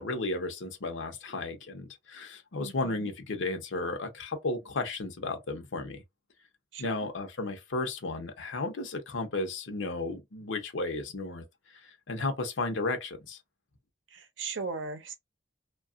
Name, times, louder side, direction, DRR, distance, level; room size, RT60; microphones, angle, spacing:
voice 1, 0.0-6.0 6.8-11.4 11.7-13.4, left 2 dB, 85° left, 0.7 m, -34 dB
voice 2, 2.6-3.1 6.7-7.0 14.1-15.1, right 4 dB, 80° right, 0.7 m, -38 dB
2.7 x 2.3 x 2.4 m
head